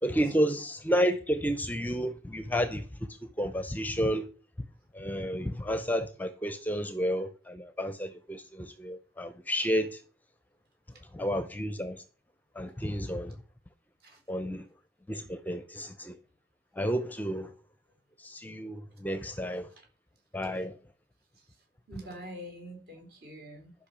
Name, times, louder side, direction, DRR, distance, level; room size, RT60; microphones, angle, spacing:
voice 1, 0.0-4.3 4.9-10.0 11.1-12.0 12.5-13.4 14.3-14.7 15.1-16.2 16.7-17.5 18.2-19.7 20.3-20.8, equal, 10° left, 0.6 m, -31 dB
voice 2, 21.9-23.7, right 1 dB, 55° right, 3.7 m, -45 dB
11.5 x 5.3 x 6.8 m
head